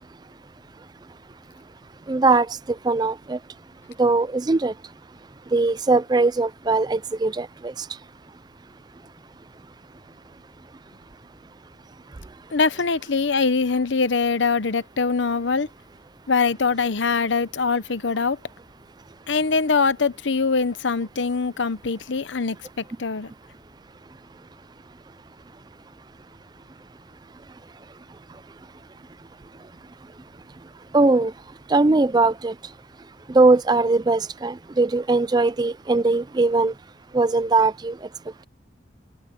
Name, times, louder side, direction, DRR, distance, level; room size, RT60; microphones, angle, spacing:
voice 1, 2.1-3.4 4.0-4.7 5.5-7.9 30.9-31.3 31.7-32.5 33.3-36.7 37.1-38.0, right 3 dB, 20° right, 0.4 m, -20 dB
voice 2, 12.5-15.7 16.3-18.4 19.3-23.3, left 4 dB, 80° left, 0.8 m, -23 dB
head